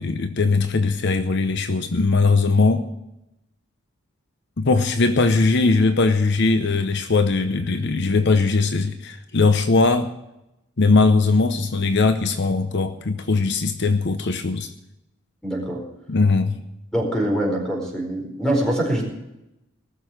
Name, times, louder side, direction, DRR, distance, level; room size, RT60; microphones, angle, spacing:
voice 1, 0.0-2.8 4.6-10.1 10.8-14.7 16.1-16.6, left 3 dB, 60° left, 9 dB, 0.8 m, -20 dB
voice 2, 15.4-15.8 16.9-19.0, right 1 dB, 5° left, 0 dB, 4.5 m, -23 dB
19.0 x 7.0 x 7.8 m, 0.89 s
head